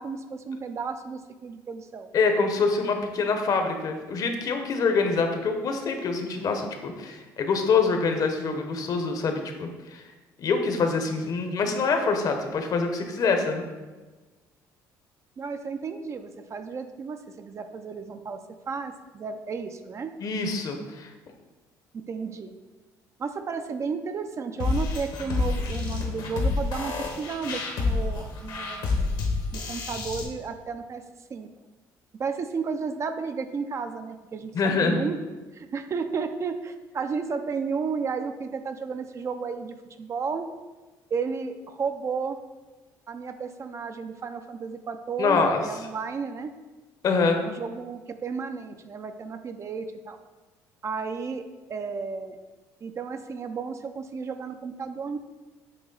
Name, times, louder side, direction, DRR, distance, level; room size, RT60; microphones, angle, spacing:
voice 1, 0.0-2.1 15.4-20.1 21.9-22.6 23.2-29.2 29.5-31.0 31.3-31.5 32.2-34.5 34.8-35.2 35.5-40.5 41.1-42.4 43.1-46.5 47.4-50.2 50.8-52.4 52.8-55.2, right 5 dB, 40° right, 8 dB, 0.4 m, -33 dB
voice 2, 2.1-10.0 10.4-13.6 20.2-21.1 34.5-35.0 45.2-45.6 47.0-47.4, left 4 dB, 50° left, 5 dB, 0.8 m, -25 dB
sound 1, 24.6-30.2, left 3 dB, 75° left, 1.2 m, -28 dB
7.7 x 3.1 x 3.9 m, 1.2 s
cardioid pair, 95°, 8 cm